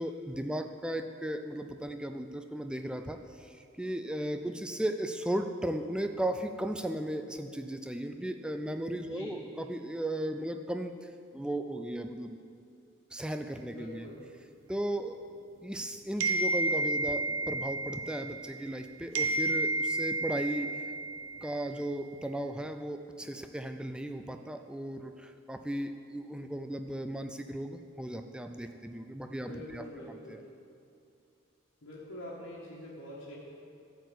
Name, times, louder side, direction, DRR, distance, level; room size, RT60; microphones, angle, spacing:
voice 1, 0.0-10.9 11.3-12.4 13.1-14.1 14.7-15.2 15.6-20.8 21.4-30.4, right 1 dB, 5° right, 6 dB, 0.4 m, -36 dB
voice 2, 8.9-9.4 13.6-14.2 29.2-30.4 31.8-33.3, left 1 dB, 80° left, -8 dB, 1.7 m, -45 dB
sound 1, 16.2-18.8 19.1-21.7, right 2 dB, 70° right, 0.8 m, -31 dB
12.0 x 4.7 x 8.1 m, 2.5 s
head